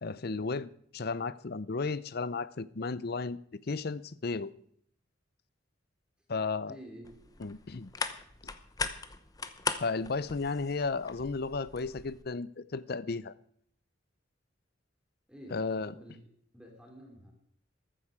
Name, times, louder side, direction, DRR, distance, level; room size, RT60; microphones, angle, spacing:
voice 1, 0.0-3.4 3.7-4.5 6.3-6.8 7.4-7.9 9.8-13.3 15.5-15.9, left 4 dB, 50° left, 0.6 m, -34 dB
voice 2, 6.7-7.5 15.3-17.3, equal, 5° right, 2.7 m, -50 dB
sound 1, 7.0-12.2, left 4 dB, 20° left, 0.8 m, -39 dB
14.5 x 12.5 x 4.9 m
head